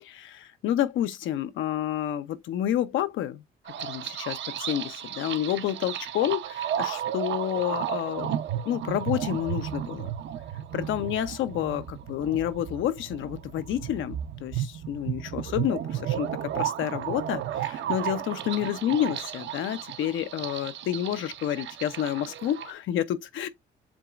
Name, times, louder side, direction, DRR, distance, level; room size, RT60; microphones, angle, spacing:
voice 1, 0.0-3.4 3.8-8.3 8.6-10.1 10.7-23.5, left 11 dB, 85° left, 0.8 m, -29 dB
sound 1, 3.7-22.7, right 10 dB, 70° right, 0.7 m, -33 dB
7.3 x 2.9 x 2.4 m
cardioid pair, 90°, 20 cm